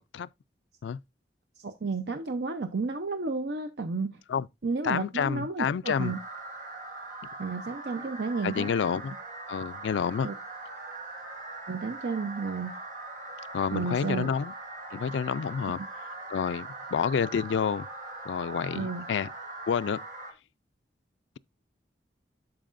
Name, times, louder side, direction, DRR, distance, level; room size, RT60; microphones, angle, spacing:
voice 1, 1.6-4.2 4.6-6.2 7.4-8.8 10.2-10.4 11.7-12.8 13.7-14.3 18.7-19.1, right 4 dB, 70° right, 0.6 m, -32 dB
voice 2, 4.8-6.1 8.4-9.1 9.5-10.3 13.5-14.5 14.9-15.8 16.3-17.9 18.3-19.3 19.7-20.0, left 7 dB, 85° left, 0.3 m, -29 dB
sound 1, 5.8-20.3, right 2 dB, 45° right, 1.6 m, -41 dB
12.5 x 4.7 x 2.5 m
head